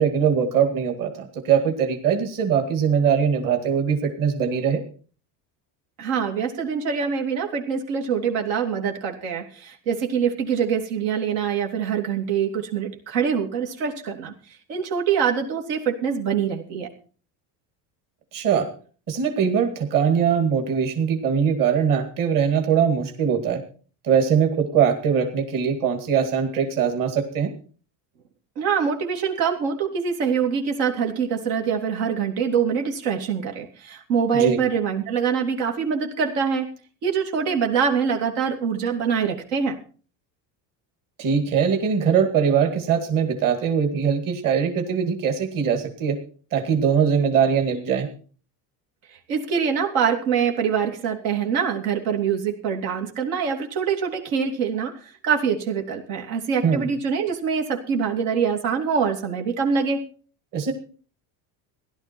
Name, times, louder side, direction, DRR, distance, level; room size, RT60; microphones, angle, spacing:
voice 1, 0.0-4.8 18.3-18.7 19.1-23.6 24.0-27.5 34.3-34.6 41.2-46.2 46.5-48.1 56.6-56.9 60.5-60.7, right 7 dB, 45° right, 5 dB, 2.2 m, -21 dB
voice 2, 6.0-14.3 14.7-16.9 28.6-36.7 37.0-39.8 49.3-60.0, right 6 dB, 80° right, 2 dB, 3.1 m, -24 dB
16.0 x 12.0 x 4.5 m, 0.40 s
cardioid pair, 130°, 47 cm